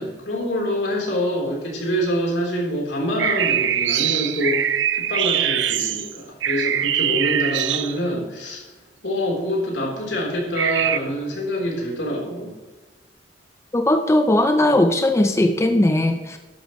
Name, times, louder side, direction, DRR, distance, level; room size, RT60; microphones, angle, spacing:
voice 1, 0.0-8.6 9.0-12.6, equal, 80° left, -1 dB, 3.8 m, -26 dB
sound 1, 3.2-8.2 10.5-11.0, right 10 dB, 90° right, 0.6 m, -22 dB
voice 2, 13.7-16.4, left 1 dB, 15° left, 6 dB, 0.6 m, -18 dB
12.5 x 11.5 x 3.2 m, 1.2 s
head